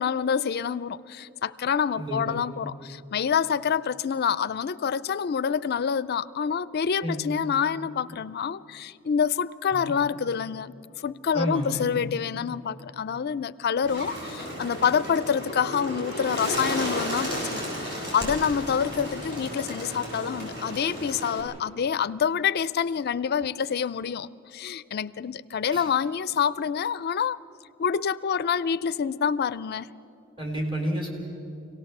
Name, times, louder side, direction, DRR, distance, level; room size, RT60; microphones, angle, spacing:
voice 1, 0.0-10.7 11.0-27.4 27.8-29.9, left 7 dB, 50° left, 0.4 m, -27 dB
voice 2, 2.0-2.3 7.0-7.3 9.7-9.9 11.3-12.0 25.7-25.9 30.4-31.1, equal, 25° right, 3.9 m, -30 dB
Bird, 13.8-21.4, equal, 55° right, 7.8 m, -33 dB
25.5 x 17.5 x 7.3 m
head